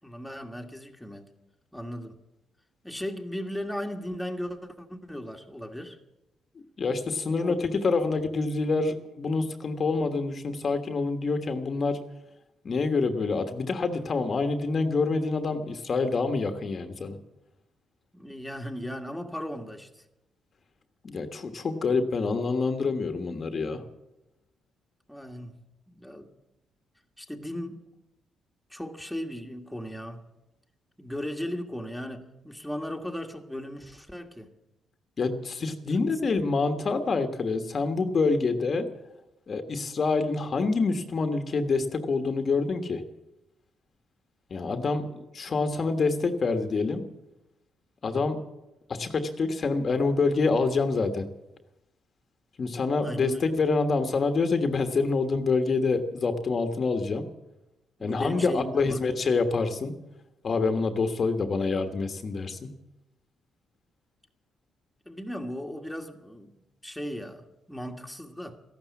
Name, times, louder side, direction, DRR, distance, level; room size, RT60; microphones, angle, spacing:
voice 1, 0.0-1.3 1.7-2.2 2.8-6.0 7.2-7.6 18.1-20.0 25.1-25.5 25.9-26.3 27.2-27.8 28.7-30.2 31.0-34.5 35.8-36.3 53.0-53.4 58.0-59.0 65.1-66.5 66.8-68.6, equal, 5° left, 1.8 m, -37 dB
voice 2, 6.8-12.0 12.6-17.2 21.0-23.8 35.2-38.9 39.5-43.0 44.5-47.0 48.0-48.4 48.9-51.2 52.6-57.3 58.0-59.9 60.4-62.7, left 4 dB, 45° left, 1.4 m, -26 dB
14.0 x 12.0 x 8.4 m
cardioid pair, 90°, 0 cm